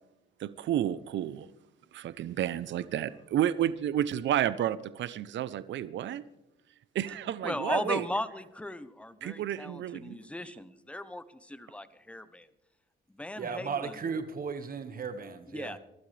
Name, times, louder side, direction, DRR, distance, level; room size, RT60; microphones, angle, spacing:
voice 1, 0.4-1.5 1.9-6.2 6.9-8.1 9.2-10.2, right 11 dB, 70° right, 0.7 m, -31 dB
voice 2, 7.4-12.5 13.2-14.0 15.5-15.8, left 1 dB, 5° left, 0.8 m, -37 dB
voice 3, 13.4-15.8, right 5 dB, 45° right, 1.6 m, -35 dB
22.0 x 12.5 x 3.3 m
cardioid pair, 90°, 20 cm